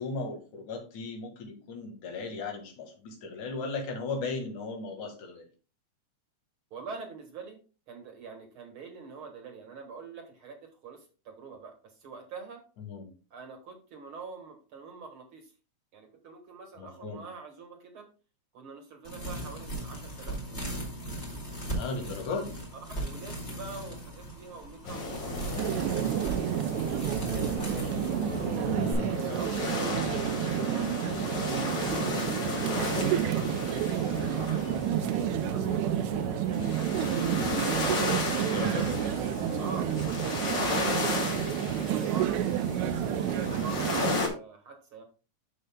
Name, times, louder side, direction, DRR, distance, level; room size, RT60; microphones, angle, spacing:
voice 1, 0.0-5.4 12.8-13.0 16.8-17.2 21.8-22.6 28.6-29.3 38.3-39.0 43.7-43.8, left 3 dB, 80° left, 3 dB, 3.1 m, -36 dB
voice 2, 6.7-7.6 7.9-12.6 13.3-15.5 15.9-18.1 18.5-20.7 23.0-28.1 29.0-31.8 32.6-37.6 38.1-38.7 39.0-39.2 39.6-39.9 40.2-42.4 43.5-45.0, right 4 dB, 55° right, 4 dB, 2.0 m, -46 dB
sound 1, 19.0-28.9, right 1 dB, 25° left, 2.3 m, -38 dB
sound 2, 24.8-44.3, left 3 dB, 45° left, 2.1 m, -34 dB
sound 3, 25.6-44.2, right 13 dB, 85° right, 1.9 m, -30 dB
12.5 x 5.4 x 2.2 m, 0.34 s
omnidirectional pair, 3.3 m